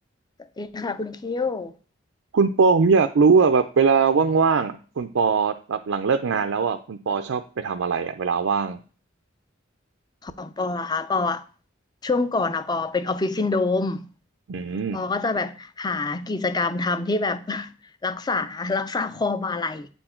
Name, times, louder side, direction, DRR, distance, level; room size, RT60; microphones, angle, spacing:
voice 1, 0.6-1.7 10.2-11.4 12.0-14.1 14.9-17.7 18.0-19.9, left 3 dB, 20° left, 0.5 m, -26 dB
voice 2, 2.3-8.8 14.5-15.0, right 5 dB, 85° right, 0.5 m, -21 dB
8.1 x 4.4 x 4.3 m
head